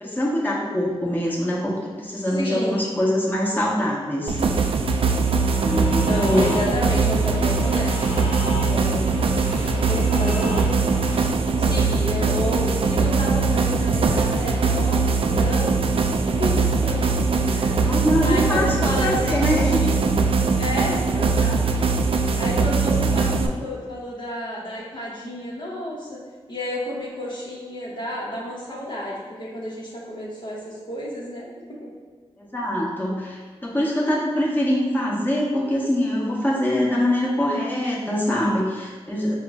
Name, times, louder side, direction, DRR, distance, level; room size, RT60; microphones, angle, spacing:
voice 1, 0.0-4.4 5.6-6.6 17.8-19.8 32.5-39.3, left 1 dB, 15° left, -4 dB, 1.0 m, -24 dB
voice 2, 2.3-2.9 6.0-9.0 9.7-10.7 11.6-15.8 16.2-17.2 17.5-17.9 18.2-20.2 20.5-21.6 22.4-26.2 26.5-31.9, left 1 dB, 45° left, -5 dB, 0.8 m, -31 dB
sound 1, 4.3-23.5, right 4 dB, 60° right, 0.4 m, -21 dB
Time travel, 5.0-11.2, left 2 dB, 80° left, 0.6 m, -36 dB
4.6 x 2.1 x 3.5 m, 1.5 s
cardioid pair, 45°, 11 cm